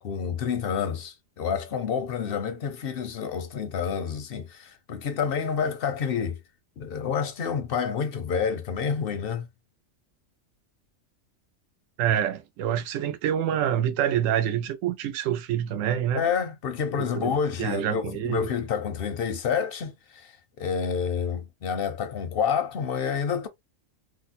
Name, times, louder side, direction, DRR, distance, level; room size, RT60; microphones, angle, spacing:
voice 1, 0.0-6.4 6.8-9.5 16.1-23.5, left 6 dB, 60° left, 0.6 m, -29 dB
voice 2, 12.0-16.2 17.1-18.5, right 10 dB, 80° right, 0.9 m, -27 dB
2.9 x 2.0 x 4.1 m
omnidirectional pair, 1.3 m